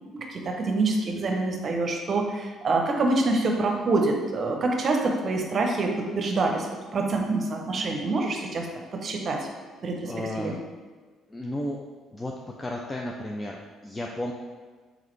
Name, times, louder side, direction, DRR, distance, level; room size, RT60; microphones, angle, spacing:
voice 1, 0.3-8.7 8.9-9.4 9.8-10.5, right 3 dB, 50° right, 2 dB, 0.7 m, -26 dB
voice 2, 10.0-10.6 11.3-11.9 12.1-14.3, left 1 dB, 25° left, 0 dB, 0.4 m, -33 dB
3.8 x 3.6 x 3.2 m, 1.4 s
hypercardioid pair, 55°, 0 cm